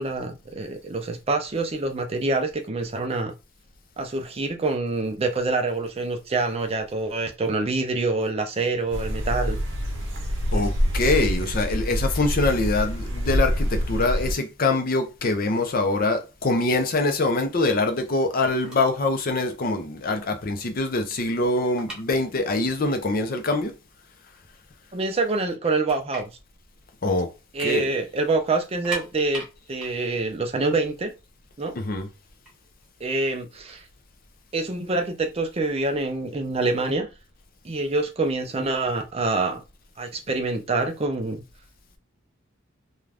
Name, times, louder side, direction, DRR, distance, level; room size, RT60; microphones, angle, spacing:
voice 1, 0.0-3.3 4.0-9.6 10.5-10.6 24.9-26.3 27.5-31.1 31.6-31.7 33.0-33.8 34.5-37.1 37.6-39.6 40.0-41.4, right 3 dB, 30° right, 0.4 m, -26 dB
sound 1, 8.9-14.3, equal, 60° right, 0.8 m, -26 dB
voice 2, 10.5-23.7 27.0-27.3 27.6-27.9 31.8-32.1, left 2 dB, 45° left, 0.5 m, -24 dB
sound 2, 18.7-19.1 19.4-19.6 20.1-20.2 20.5-22.8 23.0-23.1 23.8-23.9 24.2-24.9 25.3-25.4 25.7-27.6 27.9-28.0 28.6-31.5 32.3-34.0, right 1 dB, 5° right, 0.9 m, -41 dB
2.5 x 2.3 x 3.3 m
head